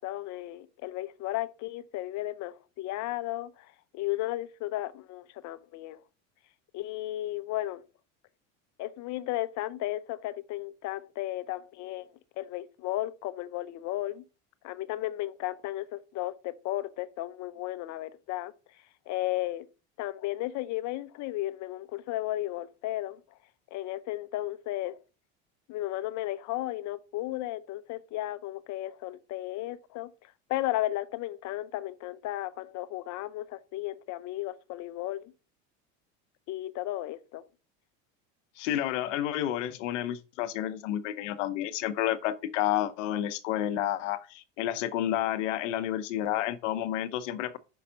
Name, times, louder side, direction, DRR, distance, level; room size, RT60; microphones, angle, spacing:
voice 1, 0.0-6.0 6.7-7.8 8.8-14.2 14.6-18.5 19.1-19.7 20.0-23.2 23.7-25.0 25.7-35.3 36.5-37.4, left 15 dB, 50° left, 0.8 m, -34 dB
voice 2, 38.6-47.6, left 12 dB, 85° left, 0.9 m, -30 dB
5.7 x 5.2 x 5.6 m
supercardioid pair, 115°, 36 cm